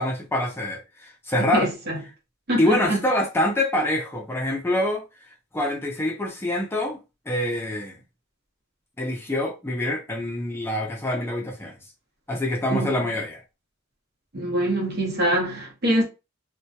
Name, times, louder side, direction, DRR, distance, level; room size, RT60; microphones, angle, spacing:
voice 1, 0.0-1.7 2.6-5.0 5.5-7.0 7.3-8.0 9.0-11.7 12.3-13.4, left 1 dB, 10° left, 0.4 m, -25 dB
voice 2, 1.4-2.0 2.5-3.0 12.7-13.1 14.3-16.0, right 1 dB, 55° right, 0.8 m, -24 dB
2.2 x 2.1 x 2.7 m
head